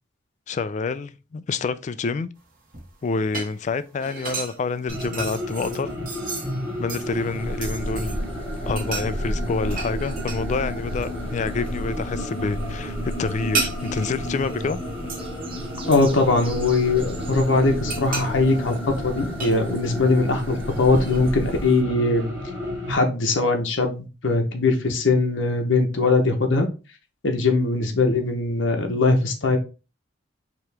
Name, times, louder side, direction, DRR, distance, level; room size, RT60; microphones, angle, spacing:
voice 1, 0.5-2.3 3.0-5.9 6.8-8.2 8.7-14.8, left 4 dB, 40° left, 0.3 m, -28 dB
sound 1, 2.4-8.3 8.7-10.7 10.9-11.7 12.1-15.4 15.9-17.0 17.5-20.2 20.6-21.3, right 4 dB, 50° right, 1.2 m, -34 dB
sound 2, 4.9-22.9, left 1 dB, 15° right, 1.4 m, -32 dB
sound 3, 7.0-21.8, equal, 30° right, 0.7 m, -35 dB
voice 2, 15.9-18.8 19.0-22.3 22.9-26.7 27.2-29.6, left 3 dB, 75° left, 0.8 m, -21 dB
4.8 x 3.0 x 3.3 m
head